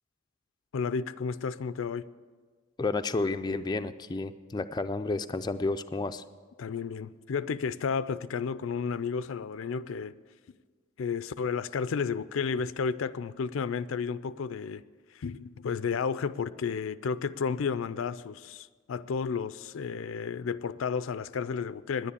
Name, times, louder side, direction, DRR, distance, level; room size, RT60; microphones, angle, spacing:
voice 1, 0.7-2.0 6.6-10.1 11.0-14.8 15.1-22.1, left 5 dB, 85° left, 16 dB, 0.4 m, -32 dB
voice 2, 2.8-6.2, left 3 dB, 20° left, 9 dB, 0.3 m, -31 dB
10.5 x 9.8 x 8.4 m, 1.5 s
head